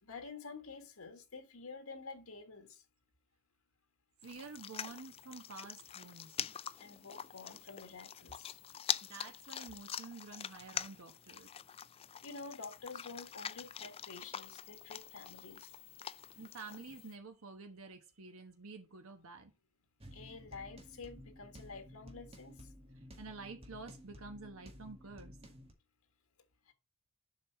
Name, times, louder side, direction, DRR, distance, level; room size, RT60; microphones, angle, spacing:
voice 1, 0.0-2.8 6.7-8.6 12.2-15.7 20.1-22.7 26.6-26.7, left 4 dB, 85° left, 1.6 m, -49 dB
sound 1, 4.2-17.1, left 9 dB, 25° left, 0.3 m, -44 dB
voice 2, 4.2-6.3 9.0-11.5 16.4-19.5 23.0-25.4, right 3 dB, 75° right, 1.1 m, -49 dB
sound 2, 20.0-25.7, equal, 30° right, 2.0 m, -54 dB
7.5 x 5.4 x 4.3 m
head